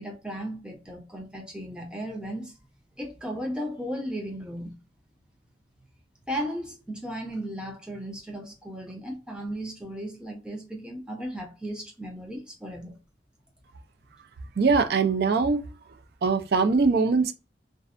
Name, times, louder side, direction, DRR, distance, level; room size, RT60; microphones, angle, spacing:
voice 1, 0.0-2.5 3.0-4.8 6.3-13.0, equal, 5° right, 0.6 m, -35 dB
voice 2, 14.6-15.6 16.2-17.3, right 4 dB, 60° right, 0.4 m, -22 dB
2.6 x 2.1 x 2.4 m
head